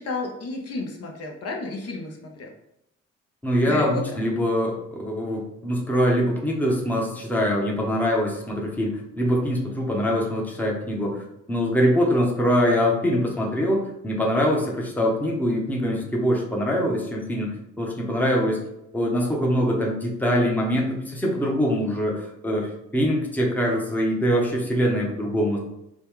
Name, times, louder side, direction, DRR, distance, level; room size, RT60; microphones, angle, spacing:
voice 1, 0.0-2.5 3.6-4.0, left 3 dB, 55° left, 1 dB, 0.8 m, -32 dB
voice 2, 3.4-17.5 17.8-18.6 18.9-25.6, equal, 5° left, -1 dB, 0.8 m, -23 dB
2.9 x 2.2 x 3.6 m, 0.82 s
cardioid pair, 90°, 30 cm